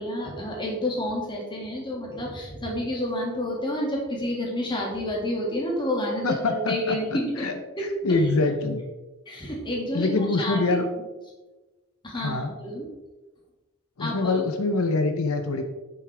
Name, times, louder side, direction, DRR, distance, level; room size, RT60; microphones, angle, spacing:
voice 1, 0.0-7.5 7.8-8.2 9.3-10.1 10.4-10.6 12.0-12.9 14.0-14.4, left 1 dB, 20° left, -2 dB, 2.1 m, -29 dB
voice 2, 6.2-7.0 7.4-7.5 7.8-8.8 9.9-10.9 12.1-12.5 14.0-15.6, left 3 dB, 80° left, 7 dB, 0.7 m, -25 dB
8.5 x 6.7 x 3.4 m, 1.1 s
head